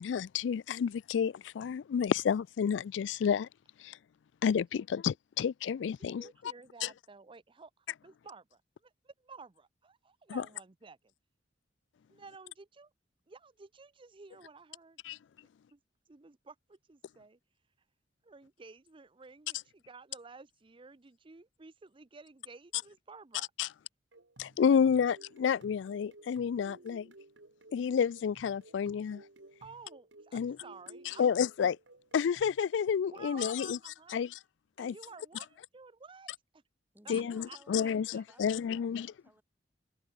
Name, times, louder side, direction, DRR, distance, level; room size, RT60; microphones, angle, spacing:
voice 1, 0.0-3.5 3.8-4.0 4.4-6.2 6.8-6.9 10.3-10.4 15.0-15.2 23.6-23.7 24.4-27.1 27.7-29.2 30.3-30.6 31.1-31.8 32.1-33.8 34.1-34.3 34.8-34.9 37.1-39.1, left 7 dB, 85° left, 0.3 m, -30 dB
voice 2, 4.5-4.8 6.0-11.1 12.1-12.9 13.3-15.2 15.7-15.8 16.1-17.4 18.2-23.7 24.7-25.1 29.6-31.5 33.1-34.2 34.8-36.6 37.0-38.2, right 4 dB, 30° right, 0.6 m, -53 dB
sound 1, 24.1-32.6, right 2 dB, 90° right, 2.5 m, -56 dB
voice 3, 36.9-39.4, right 1 dB, 10° right, 4.3 m, -61 dB
head